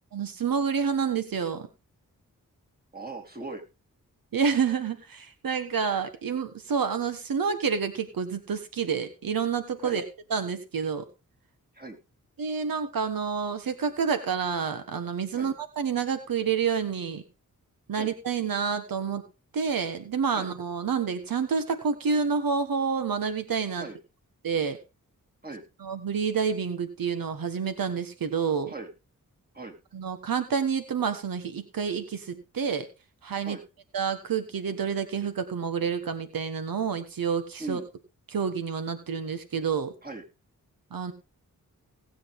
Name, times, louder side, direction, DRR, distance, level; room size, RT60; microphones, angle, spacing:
voice 1, 0.1-1.7 4.3-10.0 10.3-11.1 12.4-17.2 17.9-19.2 19.5-23.9 24.4-24.8 25.8-28.7 29.9-32.9 33.2-33.6 33.9-37.8 38.3-39.9 40.9-41.1, right 6 dB, 80° right, 10 dB, 1.5 m, -28 dB
voice 2, 2.9-3.6 9.8-10.0 11.7-12.0 15.3-15.5 18.0-18.1 20.3-20.5 23.8-24.0 25.4-25.6 28.7-28.9 29.5-29.8 33.4-33.6 37.6-37.8 40.0-40.2, right 3 dB, 25° right, 2 dB, 3.8 m, -39 dB
18.5 x 8.0 x 3.6 m, 0.30 s
cardioid pair, 55°, 34 cm